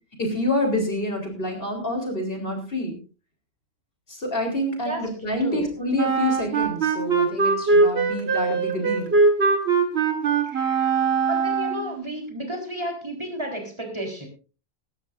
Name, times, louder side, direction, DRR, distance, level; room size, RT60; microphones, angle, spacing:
voice 1, 0.2-3.0 4.1-9.1, left 1 dB, 65° left, 2 dB, 4.1 m, -27 dB
voice 2, 5.4-5.7 10.4-10.9 11.3-14.3, right 1 dB, 25° right, 2 dB, 4.0 m, -32 dB
Wind instrument woodwind instrument, 6.0-12.0, right 4 dB, 80° right, 2.1 m, -21 dB
19.0 x 13.5 x 2.6 m, 0.35 s
omnidirectional pair, 1.1 m